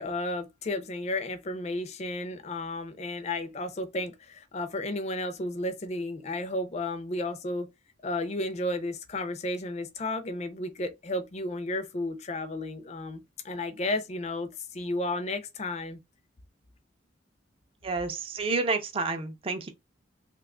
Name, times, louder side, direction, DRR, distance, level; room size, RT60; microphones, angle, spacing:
voice 1, 0.0-7.7 8.0-16.0, left 2 dB, 35° left, 0.4 m, -33 dB
voice 2, 17.8-19.7, right 3 dB, 30° right, 0.4 m, -29 dB
2.8 x 2.2 x 3.5 m
head